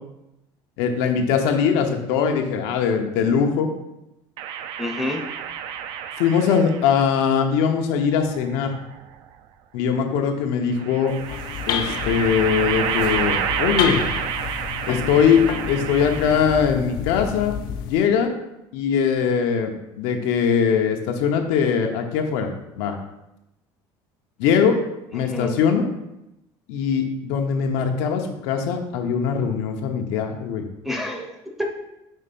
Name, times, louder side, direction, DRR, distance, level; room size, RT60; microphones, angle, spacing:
voice 1, 0.8-3.7 6.2-8.7 9.7-11.1 11.7-14.0 14.9-17.5 17.9-18.3 18.7-19.7 20.0-22.5 22.8-23.0 24.4-24.8 25.1-25.9 26.7-30.6, left 7 dB, 85° left, 4 dB, 0.8 m, -21 dB
sound 1, 4.4-7.0 8.1-9.1 10.7-16.7, right 8 dB, 60° right, 0.4 m, -29 dB
voice 2, 4.8-5.2 25.1-25.5 30.8-31.7, left 1 dB, 5° right, 1 dB, 0.6 m, -28 dB
sound 2, 11.1-18.1, left 8 dB, 50° left, 0.4 m, -30 dB
5.5 x 3.3 x 5.4 m, 0.88 s
cardioid pair, 170°, 9 cm